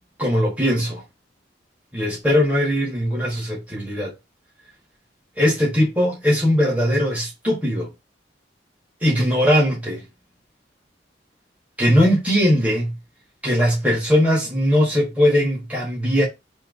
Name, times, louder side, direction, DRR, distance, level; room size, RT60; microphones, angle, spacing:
voice 1, 0.2-1.0 1.9-4.1 5.4-7.9 9.0-10.0 11.8-12.9 13.4-16.2, equal, 10° right, 1.6 m, -20 dB
3.6 x 3.0 x 3.7 m
head